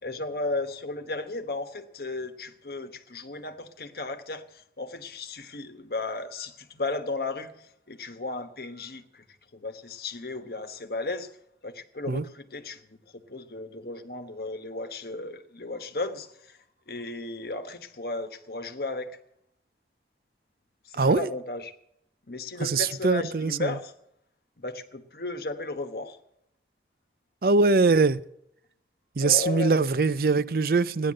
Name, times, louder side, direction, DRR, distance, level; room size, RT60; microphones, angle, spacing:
voice 1, 0.0-9.2 9.5-11.3 11.6-16.6 16.9-19.1 20.8-21.7 22.3-23.9 24.6-26.2 29.2-29.8, left 3 dB, 60° left, 1.2 m, -35 dB
voice 2, 21.0-21.3 22.6-23.7 27.4-28.2 29.2-31.1, right 4 dB, 55° right, 0.5 m, -22 dB
14.5 x 10.5 x 7.6 m
head